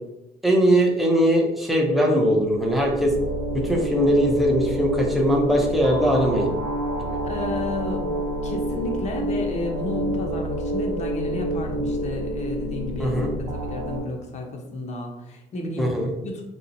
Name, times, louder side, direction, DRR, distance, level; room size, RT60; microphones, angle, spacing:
voice 1, 0.4-3.1 3.5-6.5 7.1-7.2 13.0-13.3 15.8-16.1, equal, ahead, -1 dB, 0.5 m, -20 dB
sound 1, 2.5-14.0, right 1 dB, 90° right, 0.7 m, -28 dB
voice 2, 7.2-8.2 8.4-13.2 13.5-15.9 16.2-16.4, left 2 dB, 40° left, 2 dB, 0.6 m, -32 dB
2.7 x 2.1 x 2.5 m, 0.93 s
cardioid pair, 110°, 17 cm